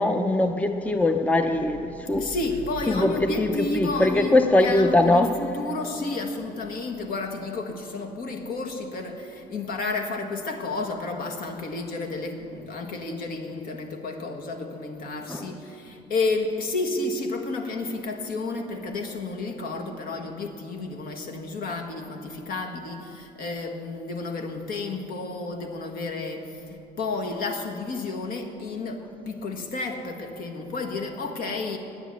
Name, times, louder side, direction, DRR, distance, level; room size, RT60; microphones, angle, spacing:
voice 1, 0.0-2.2 2.9-5.3 15.3-15.4, left 2 dB, 10° left, 7 dB, 0.5 m, -21 dB
voice 2, 1.9-31.8, left 3 dB, 60° left, 3 dB, 1.7 m, -31 dB
10.0 x 9.3 x 8.4 m, 2.8 s
cardioid pair, 110°, 17 cm